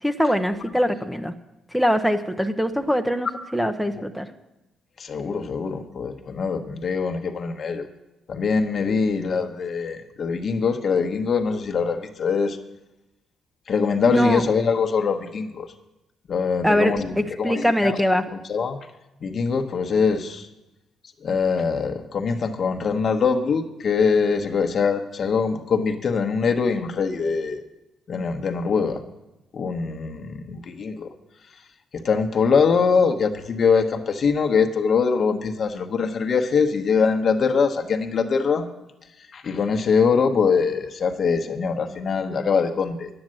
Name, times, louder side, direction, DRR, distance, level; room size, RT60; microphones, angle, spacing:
voice 1, 0.0-1.3 1.7-3.3 3.5-4.3 14.1-14.4 16.6-18.2, equal, ahead, 8 dB, 0.7 m, -22 dB
voice 2, 5.0-7.9 8.3-12.6 13.7-15.7 16.3-18.0 18.5-18.8 19.2-20.5 21.2-27.6 28.1-29.0 29.5-31.1 31.9-38.7 39.3-43.1, left 5 dB, 50° left, 6 dB, 1.1 m, -23 dB
10.0 x 8.8 x 7.7 m, 0.97 s
cardioid pair, 90°, 0 cm